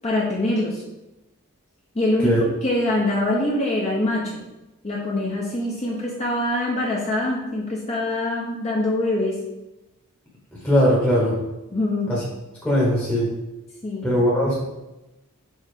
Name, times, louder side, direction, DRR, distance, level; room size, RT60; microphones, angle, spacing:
voice 1, 0.0-0.8 1.9-2.3 2.6-4.4 4.8-9.4 11.7-12.1 13.8-14.1, left 1 dB, 30° left, -3 dB, 0.7 m, -24 dB
voice 2, 10.6-11.4 12.1-12.2 12.6-13.3 14.0-14.5, equal, 10° left, -6 dB, 1.0 m, -19 dB
4.7 x 4.2 x 4.9 m, 0.99 s
head